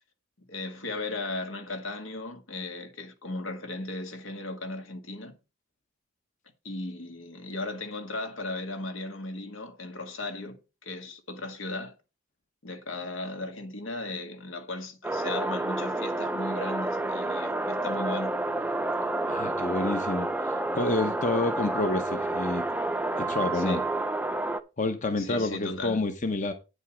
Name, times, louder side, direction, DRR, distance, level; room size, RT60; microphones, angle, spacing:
voice 1, 0.5-5.3 6.6-11.9 12.6-18.4 23.5-23.9 25.2-26.0, left 2 dB, 80° left, 1.9 m, -36 dB
sound 1, 15.0-24.6, right 2 dB, 10° right, 0.5 m, -29 dB
voice 2, 19.3-22.6 23.2-23.8 24.8-26.5, left 2 dB, 40° left, 0.9 m, -29 dB
9.4 x 5.5 x 5.0 m
head